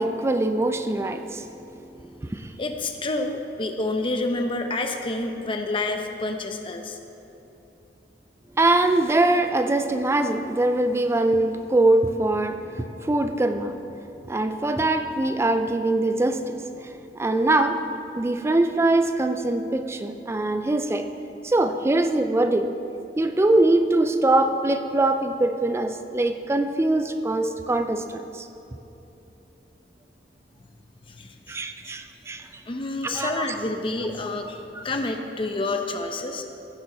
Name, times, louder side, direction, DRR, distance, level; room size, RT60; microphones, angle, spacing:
voice 1, 0.0-2.5 8.5-13.8 14.2-17.8 18.2-21.1 21.4-22.7 23.2-28.5 31.5-32.6 33.0-33.6 34.7-34.8, right 2 dB, 15° right, 8 dB, 0.3 m, -23 dB
voice 2, 2.6-7.0 31.2-31.6 31.9-32.0 32.7-36.4, left 2 dB, 30° left, 5 dB, 0.7 m, -28 dB
15.0 x 7.2 x 3.9 m, 2.9 s
head